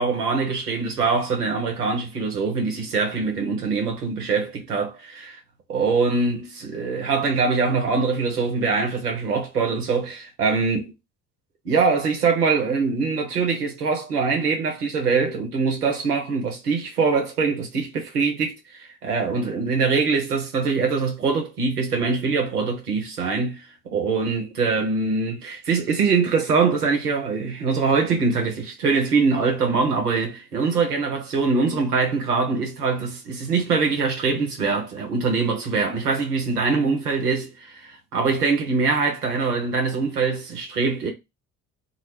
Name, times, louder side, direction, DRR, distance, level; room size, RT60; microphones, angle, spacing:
voice 1, 0.0-5.4 5.7-10.9 11.6-23.6 23.9-41.1, right 4 dB, 85° right, 0.7 m, -23 dB
2.0 x 2.0 x 3.1 m
figure-of-eight pair, 45°, 45 cm